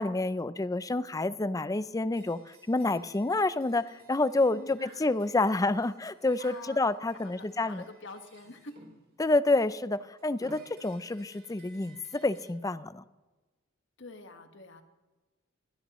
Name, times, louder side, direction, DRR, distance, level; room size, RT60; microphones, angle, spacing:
voice 1, 0.0-7.8 9.2-13.0, left 2 dB, 15° left, 15 dB, 0.4 m, -28 dB
sound 1, 2.1-9.1 9.8-12.5, right 3 dB, 50° right, 3.5 m, -57 dB
voice 2, 4.5-4.9 6.4-6.8 7.2-8.8 14.0-14.8, left 3 dB, 60° left, 6 dB, 1.5 m, -46 dB
22.5 x 16.5 x 3.1 m, 1.2 s
head